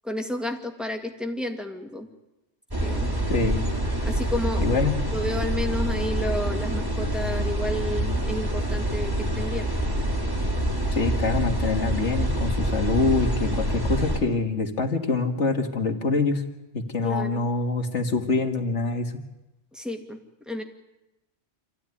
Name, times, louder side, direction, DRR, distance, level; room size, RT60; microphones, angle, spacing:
voice 1, 0.0-2.1 2.8-3.1 4.0-4.7 5.1-9.7 17.0-17.4 19.7-20.2 20.5-20.6, left 1 dB, ahead, 3 dB, 2.1 m, -31 dB
sound 1, 2.7-14.2, right 1 dB, 20° right, 2.7 m, -26 dB
voice 2, 3.3-3.6 4.6-5.0 10.9-16.4 16.7-19.1, left 3 dB, 70° left, 5 dB, 2.2 m, -25 dB
26.5 x 15.5 x 9.8 m, 0.99 s
omnidirectional pair, 1.2 m